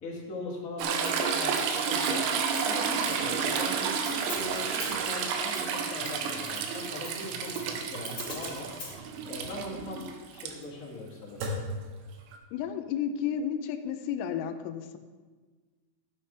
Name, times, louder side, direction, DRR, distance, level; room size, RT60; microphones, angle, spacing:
voice 1, 0.0-8.7 9.2-11.5, left 2 dB, 55° left, -6 dB, 0.8 m, -40 dB
Toilet flush / Trickle dribble, 0.8-10.5 12.3-12.4, right 6 dB, 90° right, 3.6 m, -31 dB
Hi-hat, 1.0-8.9, left 2 dB, 30° left, 2.4 m, -45 dB
sound 1, 11.3-12.8, equal, 70° right, 3.3 m, -42 dB
voice 2, 12.5-15.0, left 8 dB, 85° left, 8 dB, 3.2 m, -32 dB
13.0 x 9.1 x 3.3 m, 1.4 s
omnidirectional pair, 5.9 m